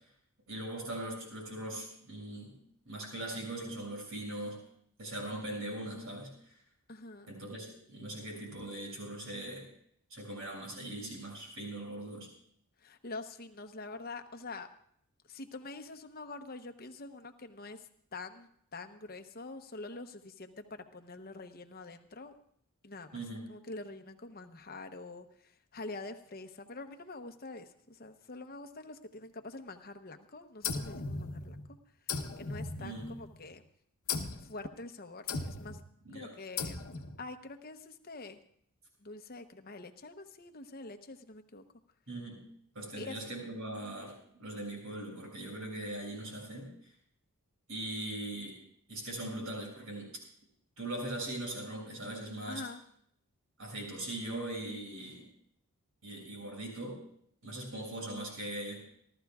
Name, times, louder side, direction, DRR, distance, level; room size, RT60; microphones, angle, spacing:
voice 1, 0.5-2.6 2.9-4.6 5.0-6.3 7.3-9.7 10.1-12.3 23.1-23.4 32.8-33.1 36.1-36.3 42.1-42.4 42.8-46.7 47.7-48.6 48.9-50.1 50.8-52.6 53.6-55.3 56.0-57.0 57.4-58.8, right 1 dB, 65° right, -1 dB, 7.0 m, -40 dB
voice 2, 6.9-7.3 12.8-14.7 15.3-22.3 22.8-23.2 23.5-31.8 32.4-33.6 34.4-35.8 36.1-36.8 37.2-38.4 39.0-41.6 42.9-43.2 52.5-52.8, left 3 dB, 40° left, 7 dB, 0.9 m, -46 dB
sound 1, 30.6-31.7 32.1-33.4 34.1-34.5 35.3-35.8 36.6-37.2, left 4 dB, 75° left, 1.0 m, -37 dB
28.5 x 13.0 x 2.4 m, 0.67 s
head